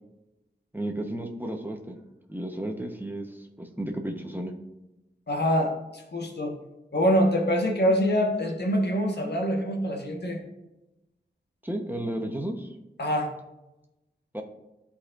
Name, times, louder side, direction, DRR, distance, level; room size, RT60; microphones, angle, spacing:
voice 1, 0.7-2.0 2.3-4.5 11.6-12.7 14.3-14.4, right 1 dB, 10° right, 2 dB, 1.0 m, -33 dB
voice 2, 5.3-6.5 6.9-10.4 13.0-13.3, equal, 65° left, 1 dB, 1.4 m, -25 dB
11.5 x 4.2 x 2.5 m, 0.97 s
cardioid pair, 45°, 19 cm